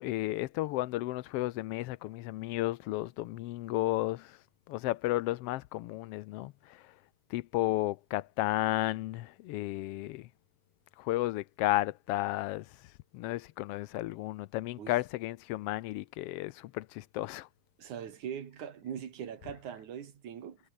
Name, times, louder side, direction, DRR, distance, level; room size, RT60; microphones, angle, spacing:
voice 1, 0.0-4.3 4.7-6.5 7.3-10.2 11.0-12.6 13.1-17.5, left 17 dB, 80° left, 1.3 m, -33 dB
voice 2, 17.8-20.6, right 8 dB, 90° right, 3.7 m, -41 dB
omnidirectional pair, 3.4 m